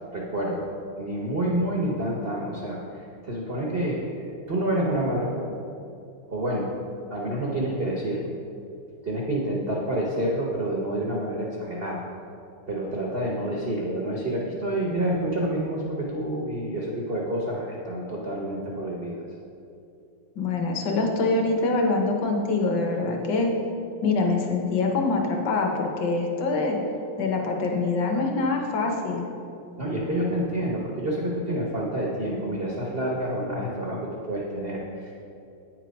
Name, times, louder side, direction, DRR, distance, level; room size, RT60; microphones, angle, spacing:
voice 1, 0.1-0.7 1.0-5.5 6.3-6.7 7.1-8.2 9.0-12.0 12.7-19.2 29.8-34.0 34.3-35.1, right 1 dB, 85° right, -3 dB, 0.5 m, -28 dB
voice 2, 20.4-23.5 24.0-26.8 27.2-29.3, left 3 dB, 60° left, 2 dB, 1.4 m, -24 dB
9.0 x 4.6 x 5.1 m, 2.6 s
omnidirectional pair, 2.4 m